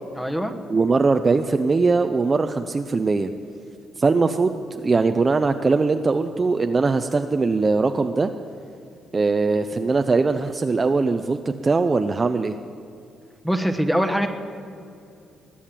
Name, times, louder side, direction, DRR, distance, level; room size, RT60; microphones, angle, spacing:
voice 1, 0.2-0.5 13.4-14.3, equal, 5° left, 6 dB, 1.2 m, -22 dB
voice 2, 0.7-3.3 4.0-8.3 9.1-12.6, right 3 dB, 25° right, 7 dB, 0.5 m, -21 dB
20.5 x 8.5 x 7.4 m, 2.6 s
cardioid pair, 115°, 0 cm